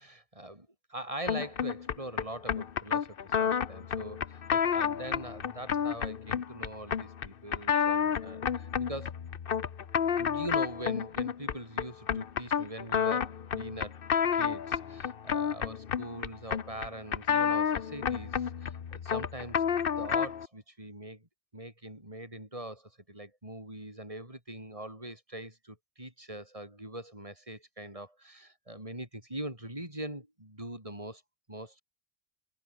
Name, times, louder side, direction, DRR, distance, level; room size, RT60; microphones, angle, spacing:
voice 1, 0.0-9.1 10.2-14.0 14.3-21.3 21.5-31.2 31.5-31.8, right 1 dB, 30° right, 7.0 m, -42 dB
sound 1, 1.3-20.5, left 7 dB, 60° left, 1.1 m, -30 dB
omnidirectional pair, 1.1 m